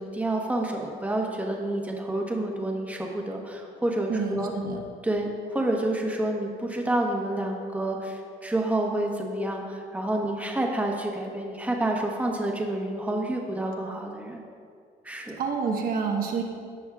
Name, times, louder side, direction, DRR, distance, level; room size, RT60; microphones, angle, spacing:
voice 1, 0.0-4.5 5.0-14.4 15.0-15.4, right 1 dB, 10° right, 0 dB, 1.2 m, -29 dB
voice 2, 4.1-4.8 15.4-16.4, right 5 dB, 60° right, 1 dB, 1.2 m, -28 dB
15.0 x 6.3 x 2.4 m, 2.3 s
cardioid pair, 110°, 17 cm